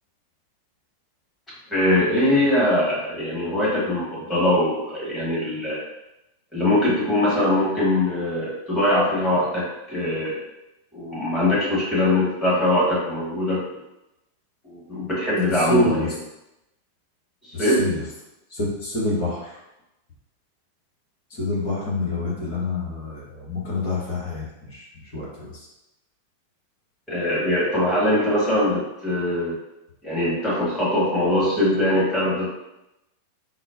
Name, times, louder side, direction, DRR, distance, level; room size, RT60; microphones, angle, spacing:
voice 1, 1.7-5.8 6.5-10.4 10.9-13.6 14.6-16.0 17.6-17.9 27.1-29.6 30.0-32.5, left 1 dB, 10° left, -7 dB, 1.4 m, -22 dB
voice 2, 15.5-16.1 17.5-18.0 18.5-19.6 21.3-24.8 25.1-25.7, left 1 dB, 50° left, -5 dB, 1.1 m, -27 dB
3.8 x 2.1 x 2.5 m, 0.90 s
figure-of-eight pair, 90°, 0 cm